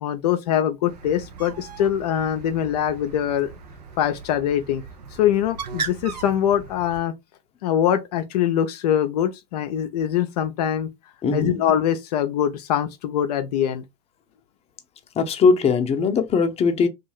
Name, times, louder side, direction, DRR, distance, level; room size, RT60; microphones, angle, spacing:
voice 1, 0.0-3.5 4.0-4.8 5.1-7.1 7.6-10.9 11.3-13.8, left 10 dB, 75° left, 0.4 m, -23 dB
Bird, 0.9-7.0, right 5 dB, 90° right, 0.6 m, -38 dB
voice 2, 11.2-11.6 15.2-16.9, left 5 dB, 30° left, 0.6 m, -20 dB
2.6 x 2.3 x 3.0 m
hypercardioid pair, 80°, 20 cm